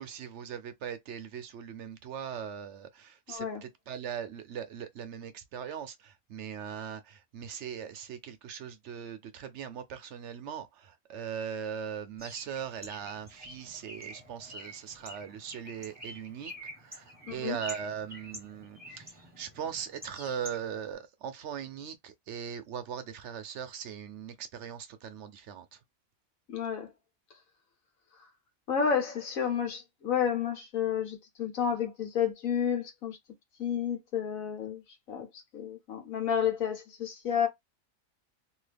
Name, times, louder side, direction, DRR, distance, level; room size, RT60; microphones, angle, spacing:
voice 1, 0.0-16.5 16.8-25.8, right 8 dB, 65° right, 0.9 m, -40 dB
voice 2, 3.3-3.6 17.3-17.6 26.5-26.9 28.7-33.2 33.6-34.8 35.1-35.3 35.5-37.5, left 8 dB, 85° left, 1.5 m, -30 dB
Bird, 12.2-20.9, equal, 5° right, 1.1 m, -47 dB
2.8 x 2.7 x 3.3 m
omnidirectional pair, 1.4 m